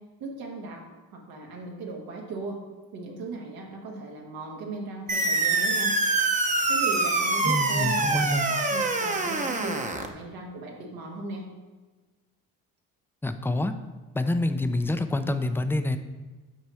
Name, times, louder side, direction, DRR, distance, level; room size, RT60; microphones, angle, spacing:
voice 1, 0.2-0.8 1.1-2.6 2.9-5.9 6.7-11.5, right 3 dB, 85° right, -1 dB, 1.6 m, -37 dB
sound 1, 5.1-10.1, right 3 dB, 20° right, 0.8 m, -25 dB
voice 2, 7.4-8.5 13.2-13.7 14.1-16.0, left 1 dB, 5° left, 9 dB, 0.5 m, -27 dB
6.3 x 4.3 x 6.2 m, 1.3 s
cardioid pair, 85°, 36 cm